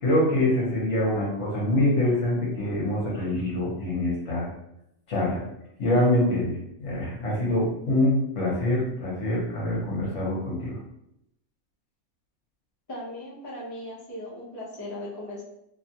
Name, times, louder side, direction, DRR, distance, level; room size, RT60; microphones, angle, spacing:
voice 1, 0.0-4.5 5.1-5.4 5.8-10.8, left 1 dB, 60° left, -5 dB, 1.2 m, -25 dB
voice 2, 12.9-15.4, left 1 dB, 25° left, -6 dB, 0.4 m, -38 dB
2.9 x 2.4 x 2.7 m, 0.79 s
omnidirectional pair, 1.5 m